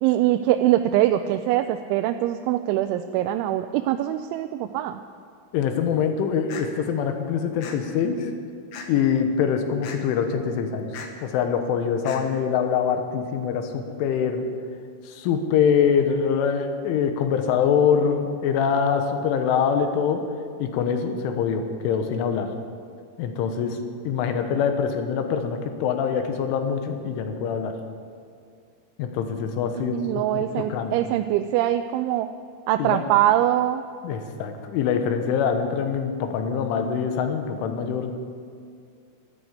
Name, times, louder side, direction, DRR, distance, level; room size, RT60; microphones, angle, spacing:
voice 1, 0.0-5.0 29.8-32.3 32.7-33.8, right 13 dB, 85° right, 7 dB, 2.9 m, -23 dB
voice 2, 5.5-8.3 8.9-10.9 11.2-14.5 15.1-20.3 20.6-22.5 23.2-23.8 24.1-27.8 29.0-30.9 32.8-33.0 34.0-38.1, left 7 dB, 85° left, 6 dB, 3.7 m, -24 dB
sound 1, 6.5-6.7 7.6-7.8 8.7-9.1 9.8-10.0 10.9-11.1 12.0-12.2, left 6 dB, 65° left, 2.8 m, -37 dB
13.0 x 13.0 x 8.3 m, 2.3 s
omnidirectional pair, 5.4 m